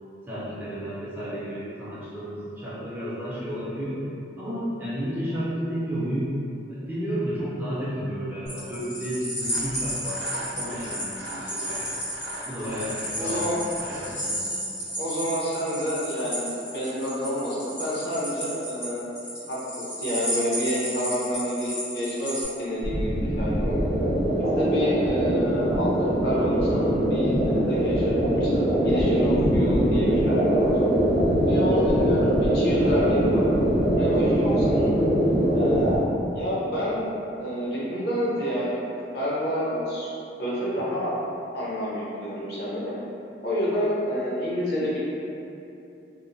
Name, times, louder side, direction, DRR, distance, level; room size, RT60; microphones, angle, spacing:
voice 1, 0.3-4.0 4.4-6.3 6.7-11.9 12.3-14.4, equal, 10° right, -10 dB, 0.4 m, -32 dB
sound 1, 8.5-22.5, equal, 75° left, 1.3 m, -33 dB
Sawing, 9.4-14.2, right 1 dB, 75° right, 0.3 m, -40 dB
voice 2, 13.1-13.6 15.0-19.1 19.5-23.8 24.6-30.8 31.4-33.5 33.9-35.1 35.5-36.0 36.3-37.1 37.4-40.1 40.4-41.1 41.5-43.0 43.4-45.1, equal, 60° left, -8 dB, 0.6 m, -28 dB
sound 2, 22.8-36.0, right 1 dB, 40° right, 0.7 m, -22 dB
2.8 x 2.0 x 2.5 m, 2.7 s
head